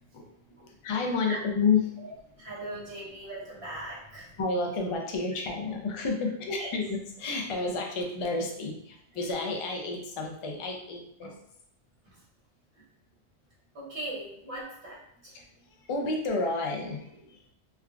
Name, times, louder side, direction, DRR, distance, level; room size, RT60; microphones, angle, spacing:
voice 1, 0.0-2.1 4.4-6.8 7.2-11.3 15.3-17.4, left 4 dB, 50° left, 1 dB, 0.3 m, -31 dB
voice 2, 2.0-4.3 6.6-6.7 9.1-9.4 11.2-11.3 12.0-12.2 12.7-12.8 13.7-15.3, right 1 dB, 60° right, -8 dB, 1.5 m, -40 dB
3.3 x 2.4 x 2.3 m, 0.70 s
omnidirectional pair, 1.1 m